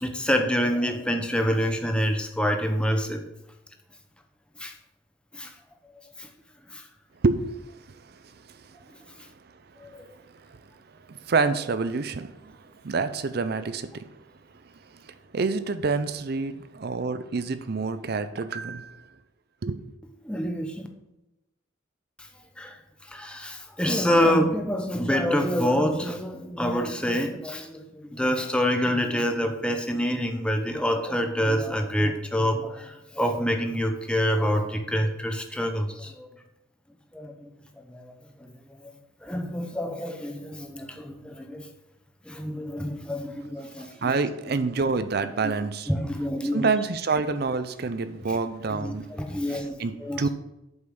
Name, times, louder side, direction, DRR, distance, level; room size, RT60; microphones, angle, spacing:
voice 1, 0.0-3.2 4.6-4.7 5.3-5.5 6.2-6.3 6.7-6.8 9.8-10.0 20.2-20.9 22.6-22.8 23.1-36.3 37.1-37.5 37.9-38.1 38.4-38.8 39.2-41.7 42.3-44.1 45.4-45.5 45.9-46.7 48.7-50.2, equal, 5° left, 4 dB, 0.7 m, -27 dB
voice 2, 7.2-7.5 7.9-8.6 10.4-10.6 11.1-14.1 14.9-19.0 19.6-19.8 43.8-45.9 46.5-49.0 49.5-50.3, right 4 dB, 50° right, 12 dB, 0.5 m, -28 dB
8.0 x 5.5 x 5.3 m, 0.95 s
head